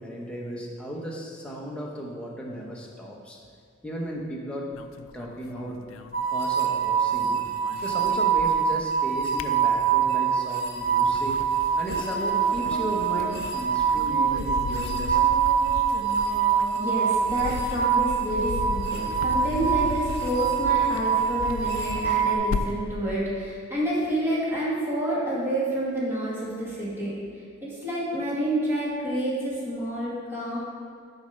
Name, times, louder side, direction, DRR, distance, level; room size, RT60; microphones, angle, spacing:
voice 1, 0.0-3.4 3.8-4.7 5.1-5.8 6.3-7.4 7.8-11.3 11.8-15.2, equal, 5° left, -3 dB, 1.0 m, -35 dB
sound 1, 4.7-6.9 7.2-8.8 9.1-10.2 10.7-22.9, left 4 dB, 85° left, 0.4 m, -37 dB
sound 2, 6.1-22.4, right 7 dB, 50° left, 0.9 m, -25 dB
sound 3, 11.8-17.8, right 2 dB, 90° right, 0.6 m, -39 dB
voice 2, 16.7-27.1 27.6-30.6, right 1 dB, 10° right, -8 dB, 2.1 m, -29 dB
7.0 x 4.4 x 6.4 m, 2.2 s
head